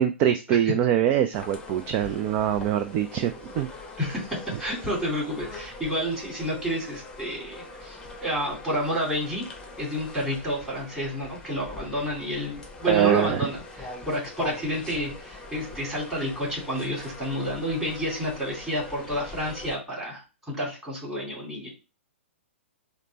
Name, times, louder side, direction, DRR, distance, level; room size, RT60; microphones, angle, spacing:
voice 1, 0.0-3.7 12.9-13.5, right 10 dB, 30° right, 8 dB, 0.3 m, -23 dB
sound 1, 1.3-19.7, left 3 dB, 10° left, 0.8 m, -42 dB
voice 2, 4.0-9.5 9.8-21.7, equal, 10° right, -5 dB, 2.3 m, -30 dB
5.1 x 2.1 x 3.9 m, 0.30 s
figure-of-eight pair, 115°, 7 cm